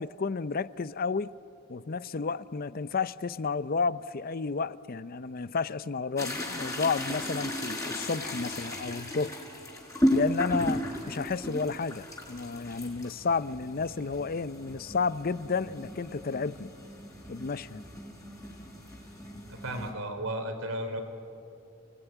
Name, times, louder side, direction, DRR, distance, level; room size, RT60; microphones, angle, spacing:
voice 1, 0.0-1.3 1.7-9.4 10.1-16.7 17.3-17.8, left 4 dB, 45° left, 0.5 m, -31 dB
sound 1, 6.2-19.9, equal, 15° left, 4.0 m, -35 dB
voice 2, 19.5-21.0, right 1 dB, 80° right, 3.6 m, -34 dB
29.5 x 18.5 x 9.1 m
head